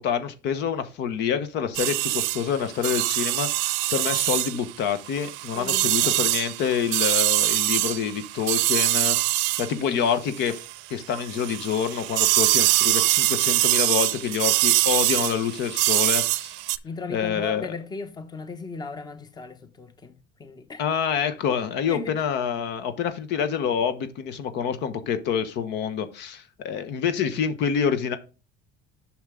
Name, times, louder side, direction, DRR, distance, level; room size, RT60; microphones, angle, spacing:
voice 1, 0.0-9.2 9.6-10.6 10.9-16.5 17.1-17.7 20.8-28.2, left 7 dB, 60° left, 1.0 m, -27 dB
sound 1, 1.7-10.8 11.1-16.8, right 20 dB, 75° right, 0.6 m, -24 dB
voice 2, 5.5-6.2 16.8-20.8 21.9-22.2, left 4 dB, 20° left, 1.1 m, -37 dB
7.3 x 6.1 x 3.7 m
cardioid pair, 130°, 20 cm